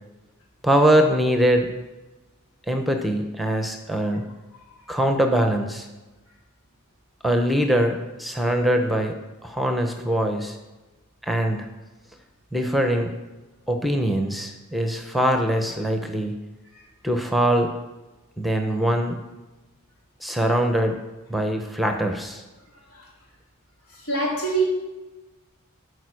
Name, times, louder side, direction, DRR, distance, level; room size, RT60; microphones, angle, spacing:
voice 1, 0.6-1.7 2.7-4.3 4.9-5.9 7.2-9.2 9.4-10.6 11.2-11.7 12.5-13.1 13.7-16.4 17.0-17.7 18.4-19.2 20.2-21.0 21.3-22.4, right 1 dB, ahead, 5 dB, 0.7 m, -22 dB
voice 2, 23.9-24.6, right 3 dB, 90° left, -3 dB, 3.4 m, -24 dB
12.5 x 5.1 x 6.2 m, 1.1 s
head